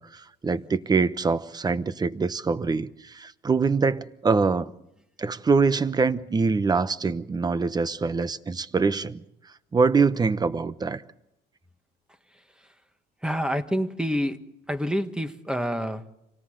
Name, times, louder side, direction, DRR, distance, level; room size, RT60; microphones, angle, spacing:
voice 1, 0.0-4.7 5.2-9.2 9.7-11.0, right 4 dB, 25° right, 1.0 m, -24 dB
voice 2, 13.2-14.4 14.7-16.0, equal, 5° right, 1.5 m, -27 dB
27.0 x 18.0 x 7.9 m
cardioid pair, 110°, 17 cm